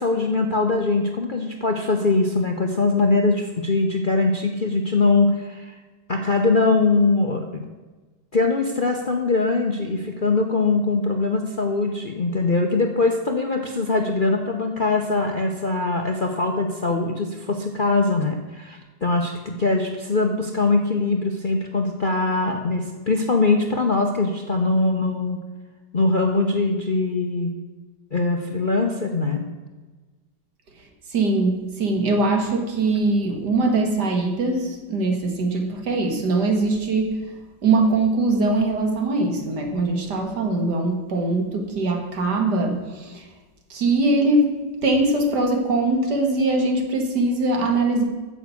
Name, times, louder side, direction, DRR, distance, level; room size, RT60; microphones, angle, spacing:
voice 1, 0.0-5.8 6.1-7.6 8.3-25.4 25.9-27.5 28.1-29.5, left 3 dB, 40° left, 3 dB, 0.8 m, -22 dB
voice 2, 31.1-37.3 37.6-43.3 43.7-48.0, right 2 dB, 65° right, 3 dB, 2.4 m, -22 dB
9.3 x 7.2 x 8.4 m, 1.3 s
omnidirectional pair, 1.9 m